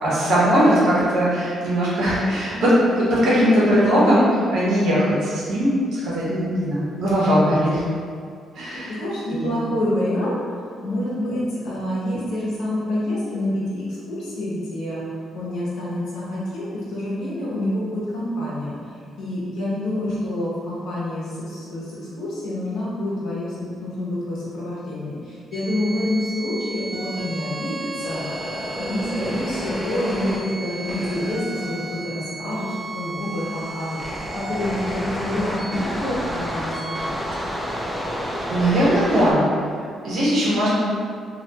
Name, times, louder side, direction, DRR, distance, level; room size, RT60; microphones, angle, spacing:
voice 1, 0.0-4.2 4.5-7.8 8.5-8.9 9.3-9.6 38.2-39.4 39.8-40.7, equal, 75° right, -8 dB, 0.8 m, -20 dB
voice 2, 8.7-37.1, left 1 dB, 85° left, -8 dB, 0.8 m, -27 dB
sound 1, 25.5-39.3, right 1 dB, 5° right, 0.4 m, -31 dB
2.4 x 2.1 x 2.8 m, 2.2 s
cardioid pair, 90°, 0 cm